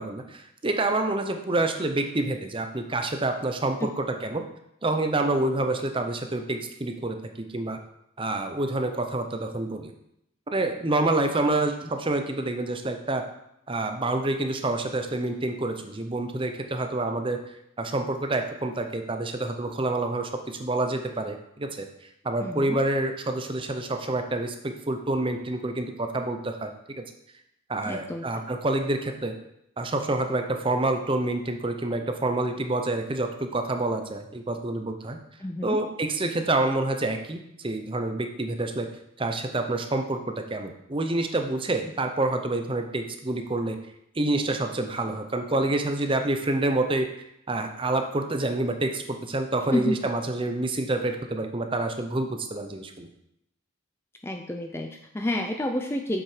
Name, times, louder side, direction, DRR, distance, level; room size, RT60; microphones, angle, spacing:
voice 1, 0.0-4.4 4.8-7.2 7.5-7.8 8.2-9.9 10.5-13.2 13.7-17.4 17.8-21.9 22.2-27.0 27.7-29.3 29.8-35.2 35.6-38.9 39.2-43.8 44.1-47.1 47.5-53.1, right 2 dB, 25° right, 6 dB, 0.7 m, -27 dB
voice 2, 22.4-22.8 27.9-28.4 35.4-35.8 49.7-50.0 54.2-56.2, left 1 dB, 10° left, 4 dB, 0.4 m, -29 dB
7.3 x 6.4 x 5.0 m, 0.80 s
head